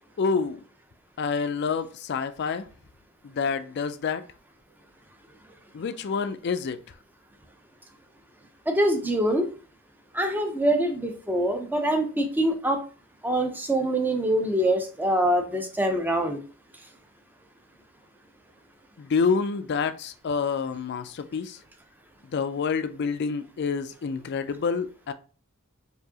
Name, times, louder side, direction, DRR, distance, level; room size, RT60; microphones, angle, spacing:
voice 1, 0.2-0.6 1.2-2.7 3.2-4.2 5.7-6.8 19.0-21.6 22.3-25.1, left 5 dB, 50° left, 0.4 m, -27 dB
voice 2, 8.7-9.5 10.1-12.8 13.2-16.4, right 1 dB, 10° right, 0.6 m, -24 dB
4.6 x 2.7 x 2.8 m
head